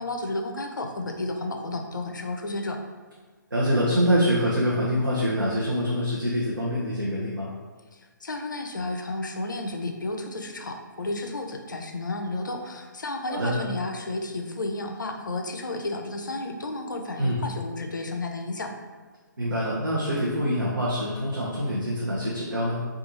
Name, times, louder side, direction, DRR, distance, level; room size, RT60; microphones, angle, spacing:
voice 1, 0.0-2.8 8.2-18.7, left 2 dB, 70° left, 4 dB, 0.4 m, -32 dB
voice 2, 3.5-7.5 13.3-13.6 17.2-17.4 19.4-22.9, equal, 80° right, -6 dB, 0.6 m, -25 dB
2.6 x 2.3 x 2.9 m, 1.4 s
figure-of-eight pair, 135°, 11 cm